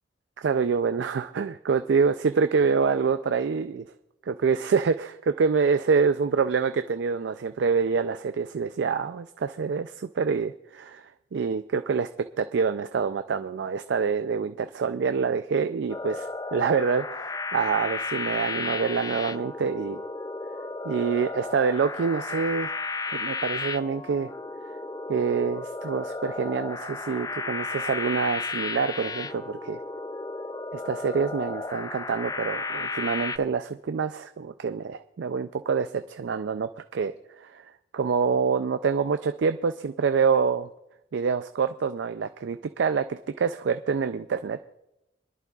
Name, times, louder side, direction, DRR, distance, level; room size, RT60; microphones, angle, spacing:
voice 1, 0.4-3.9 4.3-11.1 11.3-12.1 12.4-20.0 20.8-22.8 23.1-24.3 25.1-29.8 30.7-37.1 37.4-37.6 37.9-40.7 41.1-44.6, right 5 dB, 80° right, 9 dB, 0.4 m, -26 dB
sound 1, 15.9-33.4, left 3 dB, 20° left, 0.3 m, -33 dB
28.0 x 11.0 x 2.4 m, 0.94 s
head